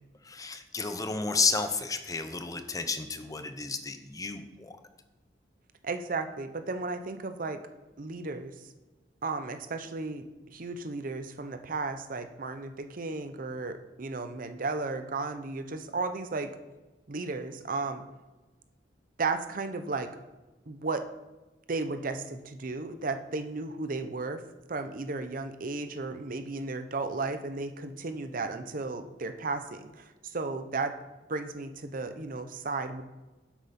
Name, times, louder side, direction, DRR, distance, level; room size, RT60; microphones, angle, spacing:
voice 1, 0.2-4.8, left 4 dB, 20° left, 8 dB, 0.7 m, -32 dB
voice 2, 5.8-7.6 8.0-8.5 9.2-16.5 17.1-18.0 19.2-20.1 20.7-21.0 21.7-24.4 24.7-30.9 31.3-33.0, right 3 dB, 50° right, 9 dB, 0.7 m, -34 dB
10.5 x 7.9 x 4.2 m, 1.2 s
head